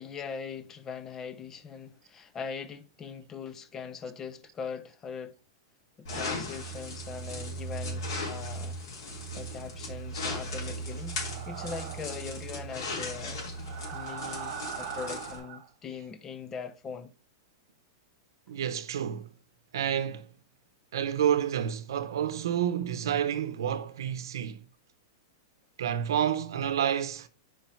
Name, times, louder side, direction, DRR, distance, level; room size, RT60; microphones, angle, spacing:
voice 1, 0.0-5.3 6.0-8.8 9.3-13.4 13.9-17.1, left 6 dB, 20° left, 0.6 m, -41 dB
sound 1, 6.1-15.4, equal, 70° left, 3.1 m, -37 dB
sound 2, 11.0-12.2 13.5-15.7, right 8 dB, 45° right, 1.3 m, -40 dB
voice 2, 18.5-19.3 19.7-20.3 20.9-24.6 25.8-27.3, right 9 dB, 85° right, 0.8 m, -29 dB
5.0 x 4.5 x 5.5 m
supercardioid pair, 160°, 2 cm